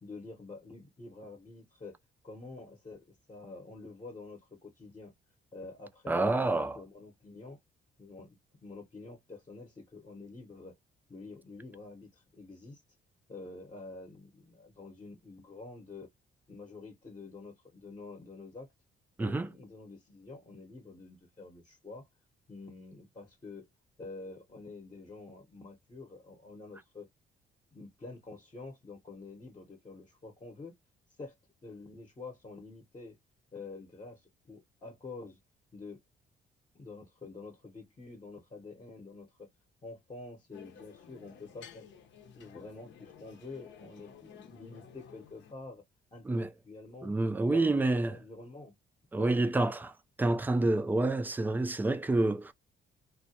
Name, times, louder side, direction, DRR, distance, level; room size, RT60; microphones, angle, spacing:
voice 1, 0.0-2.0 2.2-5.1 5.5-7.6 8.0-10.8 11.1-12.8 13.3-16.1 16.5-18.7 19.2-22.1 22.5-23.7 24.0-27.1 27.7-30.7 31.2-31.3 31.6-33.2 33.5-35.4 35.7-36.0 36.7-39.5 39.8-41.9 42.4-45.8 46.1-47.1 47.5-48.7 49.2-49.7, left 3 dB, 25° left, 0.8 m, -47 dB
voice 2, 6.1-6.8 19.2-19.5 46.3-46.5 47.0-48.2 49.1-49.9 50.2-52.5, right 2 dB, 10° right, 0.3 m, -28 dB
sound 1, 40.5-45.5, left 7 dB, 70° left, 0.7 m, -54 dB
2.2 x 2.2 x 2.7 m
cardioid pair, 90°, 20 cm